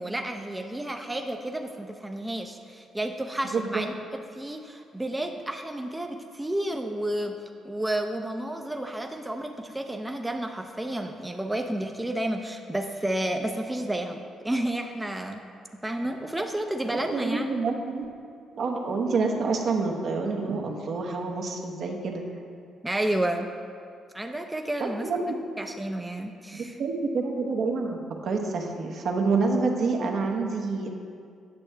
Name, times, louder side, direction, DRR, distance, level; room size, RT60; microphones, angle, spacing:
voice 1, 0.0-7.4 7.6-15.4 15.8-17.5 22.8-23.5 24.1-25.1 25.6-26.8, right 1 dB, 10° right, 4 dB, 0.5 m, -31 dB
voice 2, 3.4-3.8 16.9-18.1 18.5-22.2 24.8-25.4 25.6-25.7 26.5-30.9, right 4 dB, 65° right, 2 dB, 0.9 m, -28 dB
8.4 x 6.2 x 3.3 m, 2.3 s
supercardioid pair, 65°, 0 cm